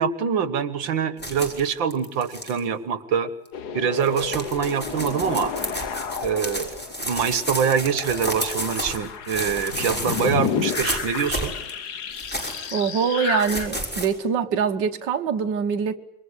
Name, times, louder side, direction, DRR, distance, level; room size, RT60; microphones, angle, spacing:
voice 1, 0.0-3.3 3.7-5.5 6.2-11.5, right 7 dB, 85° right, 13 dB, 2.2 m, -25 dB
sound 1, 1.2-2.6 3.5-3.6 3.9-9.0 9.3-11.7 12.1-12.7 13.4-14.1, equal, 5° left, 5.9 m, -31 dB
sound 2, 3.5-13.7, left 7 dB, 60° left, 1.8 m, -31 dB
voice 2, 12.7-16.0, right 6 dB, 70° right, 5 dB, 2.0 m, -24 dB
28.0 x 24.5 x 8.1 m, 0.85 s
omnidirectional pair, 2.0 m